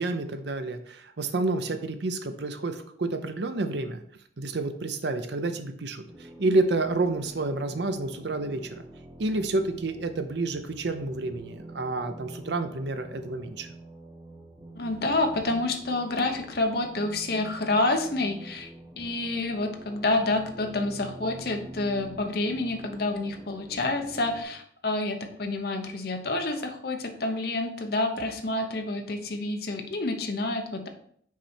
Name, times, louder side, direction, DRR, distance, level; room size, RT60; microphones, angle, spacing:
voice 1, 0.0-4.0 4.4-8.8 9.2-13.7, right 2 dB, 70° right, 8 dB, 0.7 m, -29 dB
sound 1, 6.1-24.4, right 1 dB, 25° right, 1.2 m, -46 dB
voice 2, 14.8-18.7 19.0-30.9, left 2 dB, 55° left, 5 dB, 0.9 m, -28 dB
6.0 x 4.2 x 4.4 m, 0.63 s
head